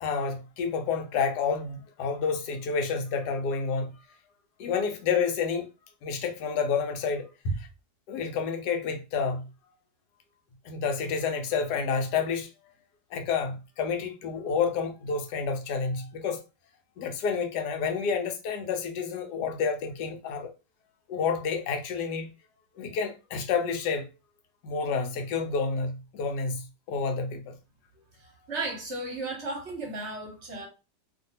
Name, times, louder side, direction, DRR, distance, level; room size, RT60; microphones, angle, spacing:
voice 1, 0.0-3.9 4.6-5.7 6.0-7.7 8.1-9.5 10.6-12.5 13.1-16.4 17.0-20.5 21.1-22.3 22.8-24.1 24.6-27.5, left 5 dB, 75° left, 1.2 m, -29 dB
voice 2, 28.5-30.7, right 2 dB, 50° right, 0.9 m, -34 dB
2.6 x 2.6 x 2.7 m
omnidirectional pair, 1.9 m